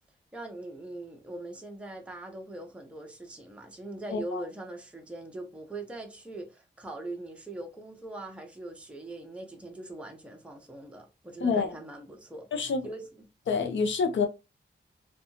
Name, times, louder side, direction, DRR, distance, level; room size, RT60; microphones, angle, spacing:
voice 1, 0.3-13.1, right 2 dB, 5° right, 0.5 m, -41 dB
voice 2, 4.1-4.4 11.4-11.8 12.5-12.8 13.5-14.3, left 5 dB, 85° left, 0.5 m, -27 dB
2.6 x 2.2 x 2.8 m
wide cardioid pair, 125°, 19 cm